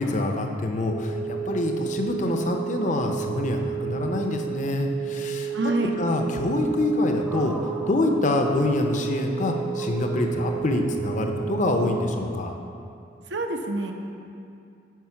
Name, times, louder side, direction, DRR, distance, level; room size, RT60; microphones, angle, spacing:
voice 1, 0.0-5.6 6.0-7.5 7.9-12.6, left 2 dB, 40° left, 3 dB, 0.6 m, -25 dB
sound 1, 0.9-12.0, right 10 dB, 80° left, 0.7 m, -32 dB
voice 2, 5.5-5.9 13.3-13.9, right 2 dB, 65° right, 3 dB, 0.8 m, -26 dB
sound 2, 7.3-11.5, right 1 dB, 5° right, 0.4 m, -42 dB
9.4 x 5.2 x 5.8 m, 2.5 s
head